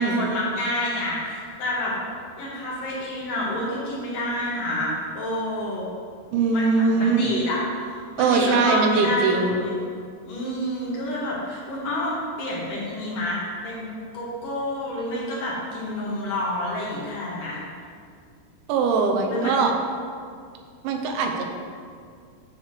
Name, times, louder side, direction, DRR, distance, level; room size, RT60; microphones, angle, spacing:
voice 1, 0.0-1.9 2.4-5.9 6.5-9.7 10.2-13.9 14.1-17.6 19.3-19.6, left 1 dB, 55° left, -6 dB, 3.0 m, -28 dB
voice 2, 6.3-7.3 8.2-9.6 18.7-19.7 20.8-21.4, right 4 dB, 90° right, 3 dB, 3.2 m, -21 dB
10.0 x 3.5 x 6.5 m, 2.2 s
omnidirectional pair, 5.2 m